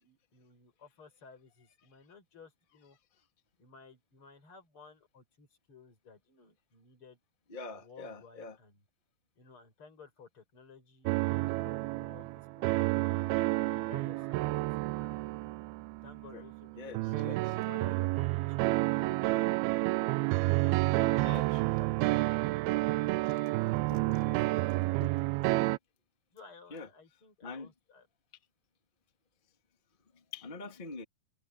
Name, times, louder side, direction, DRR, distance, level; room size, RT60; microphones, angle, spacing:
voice 1, 0.0-3.0 3.6-7.2 7.8-8.8 9.4-13.0 13.4-15.5 16.0-19.2 20.0-23.5 24.0-25.0 26.3-28.1, left 5 dB, 35° left, 7.5 m, -56 dB
voice 2, 7.5-8.6 13.1-13.3 16.3-16.4 16.8-17.4 18.9-19.0 21.0-21.6 22.8-22.9 23.9-25.1 26.7-26.9 27.4-27.7 30.1-31.0, left 3 dB, 15° left, 1.8 m, -45 dB
sound 1, 11.1-25.8, right 21 dB, 90° right, 2.5 m, -30 dB
omnidirectional pair, 4.3 m